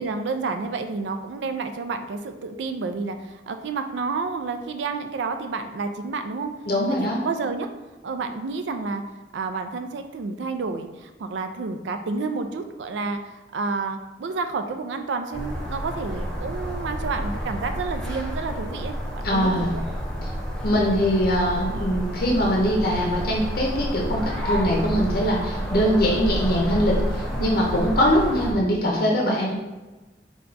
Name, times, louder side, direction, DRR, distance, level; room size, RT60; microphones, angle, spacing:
voice 1, 0.0-6.5 6.9-7.7 8.0-9.0 9.3-19.8 27.4-27.6, right 4 dB, 80° right, 7 dB, 0.4 m, -30 dB
voice 2, 6.7-7.2 19.2-19.7 20.2-20.3 20.6-29.5, equal, 55° left, -2 dB, 0.6 m, -22 dB
sound 1, 15.3-28.5, equal, 5° left, 0.6 m, -29 dB
4.4 x 2.3 x 3.9 m, 1.1 s
head